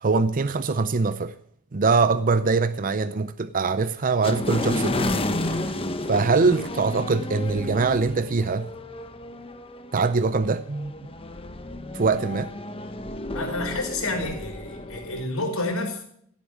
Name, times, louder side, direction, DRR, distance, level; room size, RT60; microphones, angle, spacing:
voice 1, 0.0-1.3 1.7-5.8 6.1-8.7 9.9-10.9 11.9-12.5, right 4 dB, 40° right, 0.6 m, -23 dB
sound 1, 4.2-15.2, left 1 dB, 25° left, 1.0 m, -31 dB
voice 2, 13.3-16.0, left 2 dB, 85° left, 5.1 m, -29 dB
16.0 x 8.5 x 7.3 m
head